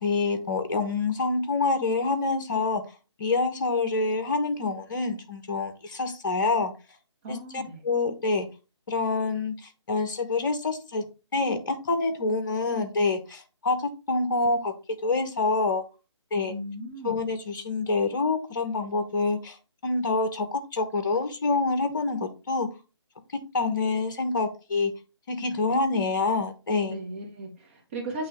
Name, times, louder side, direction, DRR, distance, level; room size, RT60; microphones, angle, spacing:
voice 1, 0.0-2.8 3.2-6.7 7.3-8.5 8.9-9.5 9.9-11.1 11.3-13.8 14.1-14.7 15.0-15.8 16.3-16.5 17.0-19.6 19.8-22.7 23.5-24.9 25.3-27.0, left 3 dB, 45° left, 9 dB, 1.2 m, -26 dB
voice 2, 7.2-7.8 16.5-17.1 26.9-28.3, right 1 dB, 25° right, 2 dB, 1.6 m, -36 dB
8.6 x 3.1 x 3.5 m, 0.31 s
figure-of-eight pair, 145°, 15 cm